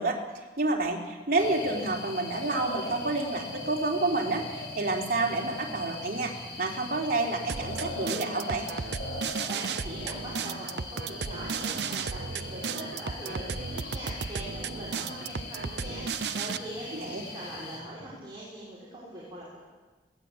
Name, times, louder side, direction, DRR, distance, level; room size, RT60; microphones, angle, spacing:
voice 1, 0.0-8.7 16.9-17.2, right 2 dB, 55° right, 0 dB, 3.5 m, -29 dB
sound 1, 1.4-17.8, left 2 dB, 75° left, 5.7 m, -40 dB
sound 2, 7.5-16.6, right 5 dB, 70° right, 0.8 m, -34 dB
voice 2, 9.5-19.6, right 1 dB, 25° right, -8 dB, 6.4 m, -42 dB
22.0 x 18.0 x 8.5 m, 1.3 s
head